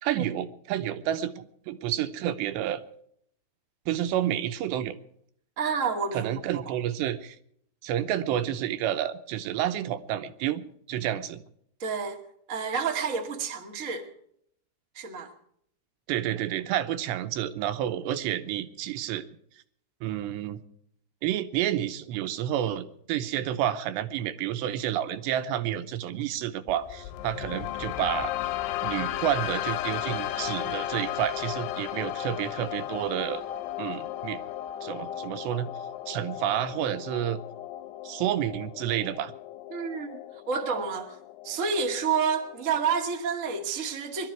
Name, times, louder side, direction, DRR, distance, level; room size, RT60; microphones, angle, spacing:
voice 1, 0.0-2.8 3.9-5.0 6.1-7.4 7.8-10.6 10.9-11.4 16.1-19.2 20.0-20.6 21.2-28.3 28.8-33.4 33.8-34.4 34.8-35.7 36.1-37.4 38.0-39.3, right 11 dB, 80° right, 10 dB, 2.9 m, -30 dB
voice 2, 5.6-6.6 11.8-12.2 12.5-14.1 14.9-15.3 39.7-40.2 40.5-41.2 41.4-44.3, right 5 dB, 55° right, 2 dB, 0.8 m, -29 dB
sound 1, 26.7-42.7, left 13 dB, 80° left, 2.5 m, -35 dB
22.0 x 12.5 x 4.5 m, 0.67 s
omnidirectional pair, 5.2 m